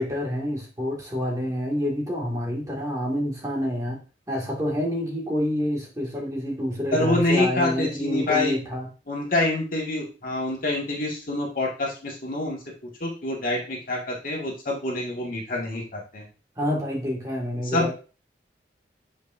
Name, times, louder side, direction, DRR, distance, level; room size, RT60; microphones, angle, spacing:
voice 1, 0.0-4.0 4.3-8.9 16.6-17.9, left 1 dB, 20° right, -3 dB, 2.1 m, -27 dB
voice 2, 6.9-8.6 9.1-12.6 13.0-16.3 17.7-17.9, left 2 dB, 50° left, -2 dB, 1.9 m, -26 dB
8.1 x 5.3 x 2.7 m, 0.34 s
head